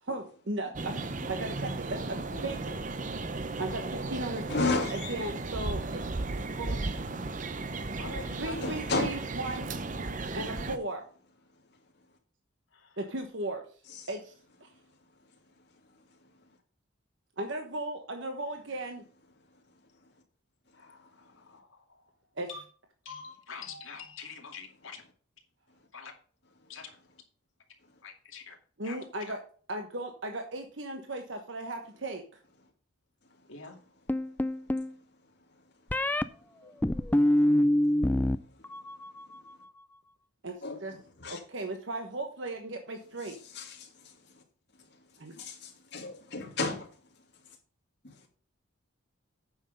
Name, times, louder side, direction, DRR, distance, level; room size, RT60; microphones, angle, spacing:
voice 1, 0.0-1.0 1.3-2.7 3.6-4.5 4.7-6.0 6.4-6.8 8.4-9.7 10.3-11.1 13.0-13.6 14.1-14.3 14.6-14.7 17.4-19.0 22.4-22.5 28.8-29.4 29.7-32.2 40.4-40.5 40.8-40.9 41.3-43.4 45.2-45.4, right 2 dB, 65° right, 1.2 m, -36 dB
sound 1, 0.7-10.8, right 3 dB, 40° right, 0.7 m, -35 dB
voice 2, 4.5-5.1 8.6-9.1 40.6-40.8 41.2-41.4 43.5-43.9 45.4-46.9 48.0-48.1, left 3 dB, 55° left, 2.5 m, -32 dB
voice 3, 8.0-8.6 12.7-13.0 20.7-22.0 22.5-22.6 23.0-25.0 25.9-26.1 26.7-27.0 28.0-28.6 28.8-29.0 33.5-33.8, left 5 dB, 75° left, 2.4 m, -45 dB
sound 2, 34.1-34.9 35.9-36.2 36.8-38.4 38.6-39.2, left 1 dB, 10° left, 0.3 m, -25 dB
9.1 x 6.4 x 5.2 m
head